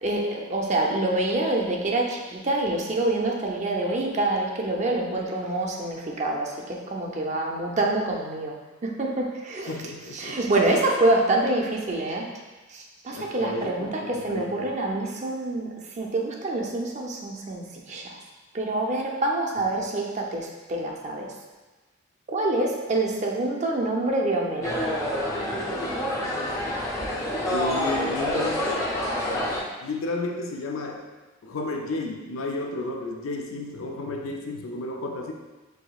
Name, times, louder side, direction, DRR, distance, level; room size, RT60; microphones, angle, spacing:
voice 1, 0.0-8.6 8.8-9.7 10.1-12.3 12.7-15.7 16.0-18.2 18.5-21.3 22.3-24.7, right 2 dB, 35° right, 0 dB, 0.5 m, -26 dB
voice 2, 9.7-10.4 13.1-14.7 27.5-28.8 29.8-31.1 31.4-35.3, left 2 dB, 80° left, 2 dB, 0.4 m, -32 dB
sound 1, 24.6-29.6, left 1 dB, 15° left, 0.6 m, -27 dB
4.8 x 3.5 x 2.3 m, 1.2 s
head